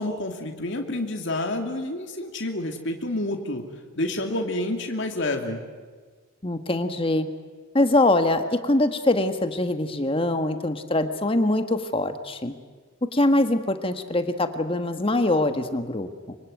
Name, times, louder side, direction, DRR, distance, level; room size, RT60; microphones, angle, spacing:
voice 1, 0.0-3.6 4.0-5.6, left 1 dB, 60° left, 3 dB, 2.6 m, -28 dB
voice 2, 6.4-7.3 7.7-12.5 13.1-16.4, left 2 dB, 25° left, 8 dB, 1.4 m, -23 dB
25.0 x 25.0 x 9.3 m, 1.5 s
head